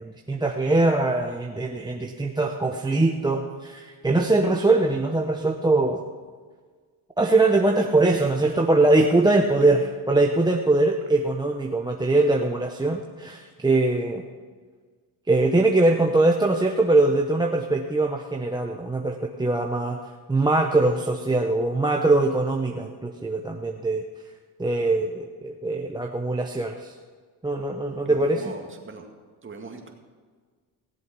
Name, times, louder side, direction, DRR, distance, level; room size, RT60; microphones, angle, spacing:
voice 1, 0.0-6.0 7.2-9.8 10.1-14.2 15.3-20.0 20.3-24.0 24.6-26.9 27.4-28.4, right 2 dB, 10° right, 2 dB, 0.9 m, -22 dB
voice 2, 28.1-29.1 29.4-29.9, right 4 dB, 30° right, 3 dB, 2.1 m, -40 dB
17.0 x 7.7 x 6.2 m, 1.5 s
cardioid pair, 90°, 43 cm